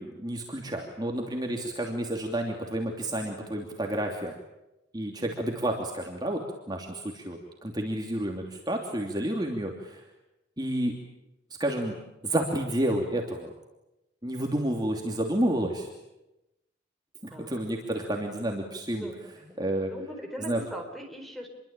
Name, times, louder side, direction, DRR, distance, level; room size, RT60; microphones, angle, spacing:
voice 1, 0.0-4.3 4.9-10.0 10.6-11.0 11.6-11.9 12.2-13.5 14.2-15.9 17.2-19.1 19.6-19.9 20.4-20.6, right 1 dB, 20° right, 1 dB, 2.9 m, -30 dB
voice 2, 19.0-19.6 19.9-21.5, equal, ahead, 4 dB, 4.5 m, -41 dB
27.5 x 23.0 x 9.0 m, 0.95 s
head